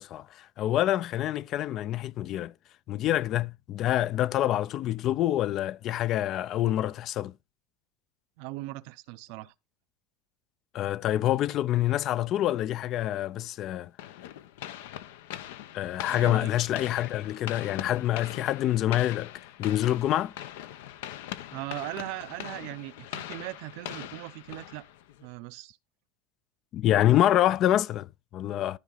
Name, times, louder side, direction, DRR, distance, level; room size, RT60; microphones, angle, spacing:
voice 1, 0.0-2.5 2.9-7.3 10.7-13.9 15.7-20.3 26.7-28.8, left 13 dB, 45° left, 0.4 m, -26 dB
voice 2, 8.4-9.5 16.1-16.5 21.5-24.9 25.2-25.8, right 20 dB, 65° right, 0.6 m, -39 dB
sound 1, 14.0-25.3, left 12 dB, 80° left, 0.8 m, -41 dB
13.0 x 4.7 x 4.0 m
supercardioid pair, 135°, 0 cm